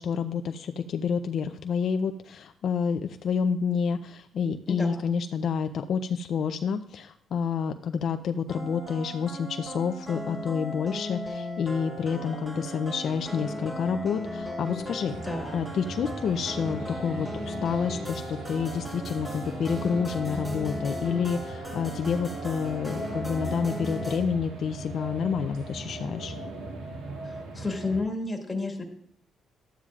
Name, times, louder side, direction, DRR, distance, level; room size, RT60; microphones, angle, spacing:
voice 1, 0.0-15.2 15.5-26.4, left 6 dB, 65° left, 7 dB, 0.4 m, -29 dB
voice 2, 4.7-5.1 15.2-15.6 27.2-28.8, left 3 dB, 20° left, 1 dB, 2.0 m, -31 dB
sound 1, 8.5-24.2, equal, 5° right, 3.4 m, -36 dB
sound 2, 15.0-28.0, right 2 dB, 90° right, 1.8 m, -39 dB
12.5 x 8.9 x 2.4 m, 0.66 s
cardioid pair, 90°, 0 cm